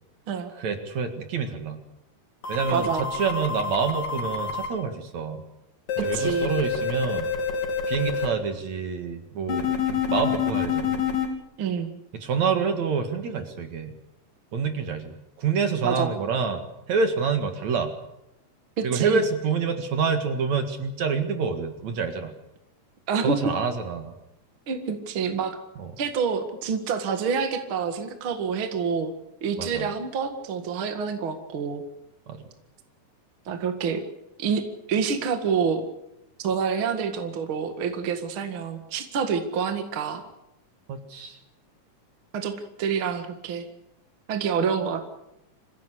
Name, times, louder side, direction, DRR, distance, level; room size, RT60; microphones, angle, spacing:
voice 1, 0.6-1.8 2.5-5.4 6.0-7.3 7.9-11.0 12.1-13.9 14.5-17.9 18.8-22.3 23.2-24.1 25.8-25.9 29.6-29.9 32.3-32.4 40.9-41.4, right 5 dB, 60° right, 6 dB, 3.0 m, -27 dB
sound 1, 2.4-4.7 5.9-8.3 9.5-11.3, left 7 dB, 80° left, 5.5 m, -27 dB
voice 2, 2.7-3.1 6.0-6.5 11.6-11.9 15.8-16.1 18.8-19.2 23.1-23.4 24.7-25.6 26.0-29.1 29.4-31.8 33.5-34.0 34.4-34.6 34.9-35.8 36.4-40.2 42.3-42.5 42.8-43.7 44.3-45.0, right 6 dB, 45° right, 6 dB, 2.4 m, -27 dB
26.0 x 16.0 x 8.3 m, 0.86 s
omnidirectional pair, 3.9 m